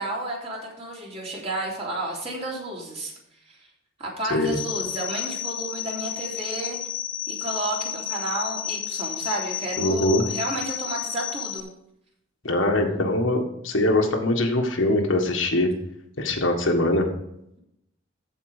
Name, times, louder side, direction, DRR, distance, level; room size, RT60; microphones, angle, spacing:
voice 1, 0.0-3.1 3.5-3.7 4.0-6.8 7.3-11.7, right 1 dB, 35° right, -3 dB, 3.4 m, -31 dB
sound 1, 4.5-11.6, left 10 dB, 40° left, 1.1 m, -32 dB
voice 2, 9.8-10.2 12.4-15.7 16.2-17.1, left 1 dB, 80° left, 3 dB, 1.6 m, -22 dB
14.5 x 5.2 x 5.0 m, 0.78 s
head